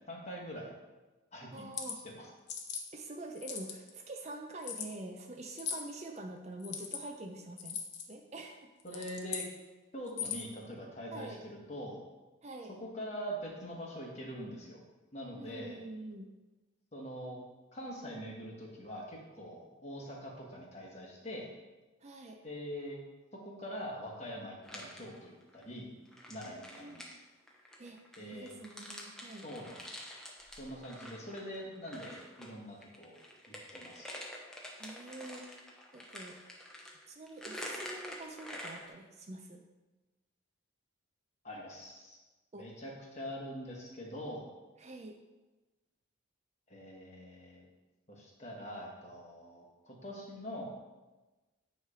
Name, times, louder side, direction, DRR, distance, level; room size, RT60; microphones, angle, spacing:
voice 1, 0.1-0.7 1.3-1.7 2.0-2.3 8.8-9.4 9.9-12.0 12.8-14.8 15.1-15.8 16.9-17.4 17.7-21.5 22.4-23.0 23.4-25.9 26.3-27.0 28.2-28.6 29.4-29.7 30.5-33.2 33.5-34.1 41.4-42.2 42.5-44.5 46.7-47.7 48.1-50.6, equal, 30° left, -2 dB, 1.3 m, -44 dB
voice 2, 1.5-2.0 2.9-7.8 8.1-8.7 8.9-9.1 11.1-11.4 12.4-12.7 15.4-16.3 22.0-22.4 26.5-27.2 27.8-29.5 34.8-35.6 35.9-36.4 37.1-39.6 42.5-42.7 44.8-45.2, right 2 dB, 30° right, 3 dB, 0.5 m, -46 dB
sound 1, 1.6-2.0 2.5-2.8 3.4-3.9 4.6-4.9 5.6-5.9 6.6-7.0 7.6-8.1 8.8-9.5 10.1-10.5, left 7 dB, 55° left, 0.7 m, -39 dB
sound 2, 24.6-25.6 26.0-32.5 32.8-38.9, equal, 5° left, 0.7 m, -47 dB
9.3 x 3.2 x 4.9 m, 1.2 s
head